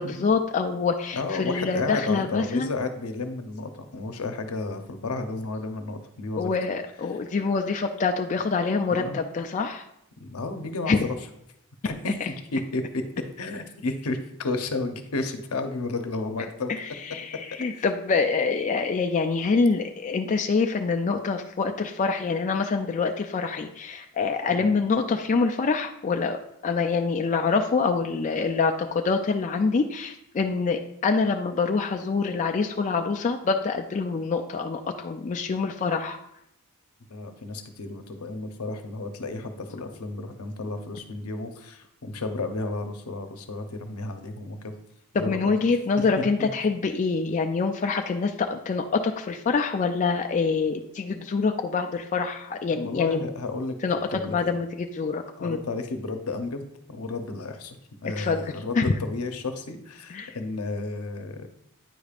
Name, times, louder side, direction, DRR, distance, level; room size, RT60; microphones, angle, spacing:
voice 1, 0.0-2.7 6.4-9.8 10.9-11.1 12.2-12.3 16.7-36.2 45.1-53.2 53.8-55.6 58.0-58.9 60.1-60.4, left 4 dB, 35° left, 5 dB, 0.3 m, -26 dB
voice 2, 1.1-6.5 8.9-9.2 10.2-10.9 11.8-12.8 13.4-16.7 17.8-17.9 24.5-24.7 37.1-44.7 45.1-45.5 46.4-46.5 52.7-53.8 54.1-54.6 55.4-57.8 58.0-61.5, left 3 dB, 80° left, 7 dB, 0.7 m, -32 dB
9.1 x 5.1 x 2.4 m, 0.77 s
head